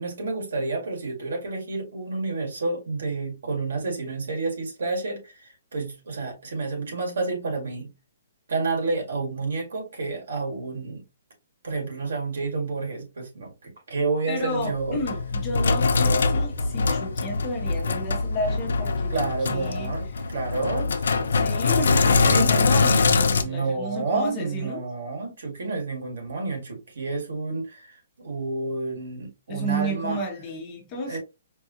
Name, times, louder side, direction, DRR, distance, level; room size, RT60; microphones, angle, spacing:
voice 1, 0.0-7.9 8.5-11.0 11.6-15.0 19.1-21.3 21.8-22.5 23.4-30.2 31.0-31.2, right 3 dB, 80° right, 1.9 m, -30 dB
voice 2, 14.3-19.1 19.5-19.9 21.2-24.8 29.5-31.2, equal, 15° left, 0.9 m, -32 dB
Sink (filling or washing), 14.6-23.4, left 4 dB, 85° left, 0.5 m, -23 dB
4.7 x 2.3 x 2.7 m
hypercardioid pair, 180°, 0 cm